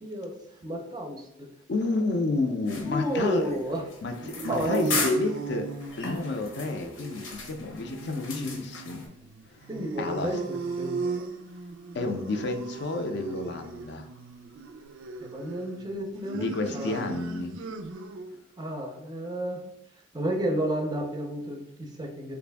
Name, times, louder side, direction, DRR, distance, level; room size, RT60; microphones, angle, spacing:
voice 1, 0.0-1.5 2.9-3.9 4.2-5.1 8.3-8.7 9.7-11.3 12.0-12.3 15.2-17.3 18.6-19.7 20.1-22.4, right 1 dB, 20° right, 3 dB, 0.4 m, -32 dB
voice 2, 1.7-3.5 4.0-5.7 6.0-9.1 9.6-9.7 10.0-10.4 11.9-14.1 16.3-17.6, left 2 dB, 60° left, 5 dB, 0.4 m, -30 dB
sound 1, 2.7-9.1, left 3 dB, 85° left, 0.8 m, -37 dB
sound 2, 3.9-18.4, right 4 dB, 90° right, 0.4 m, -38 dB
3.2 x 2.5 x 3.3 m, 0.84 s
head